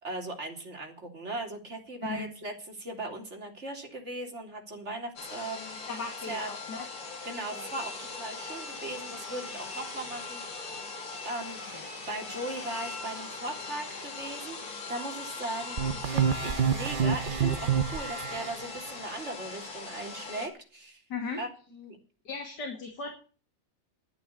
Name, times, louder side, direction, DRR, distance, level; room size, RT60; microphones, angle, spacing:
voice 1, 0.0-5.8 6.3-6.5 7.2-10.4 11.2-21.0 21.4-22.0, right 2 dB, 35° right, 2 dB, 3.6 m, -38 dB
sound 1, 5.2-20.5, left 4 dB, 85° left, 3.6 m, -40 dB
voice 2, 5.9-6.8 11.7-11.9 21.1-21.4 22.2-23.1, left 4 dB, 60° left, 3 dB, 2.9 m, -37 dB
sound 2, 15.8-18.5, right 7 dB, 70° right, 0.5 m, -27 dB
12.5 x 8.9 x 8.4 m, 0.38 s
omnidirectional pair, 2.1 m